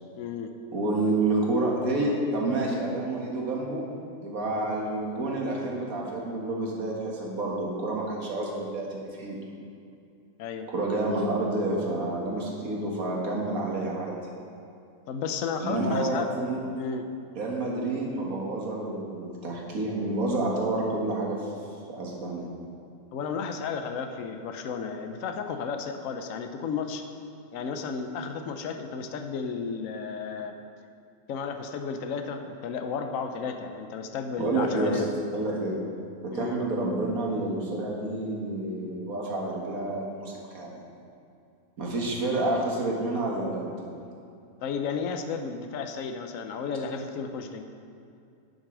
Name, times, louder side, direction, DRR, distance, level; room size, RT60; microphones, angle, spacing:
voice 1, 0.2-0.5 10.4-10.7 15.1-16.3 16.8-17.1 23.1-27.0 27.5-30.5 31.3-35.0 36.3-36.6 44.6-47.7, left 5 dB, 70° left, 6 dB, 1.1 m, -33 dB
voice 2, 0.7-3.8 4.2-9.4 10.7-14.2 15.6-16.6 17.4-21.5 21.9-22.5 34.4-35.0 35.3-35.8 36.2-40.8 41.8-43.7, right 2 dB, 70° right, -2 dB, 2.0 m, -29 dB
10.0 x 6.5 x 6.1 m, 2.5 s
omnidirectional pair, 1.6 m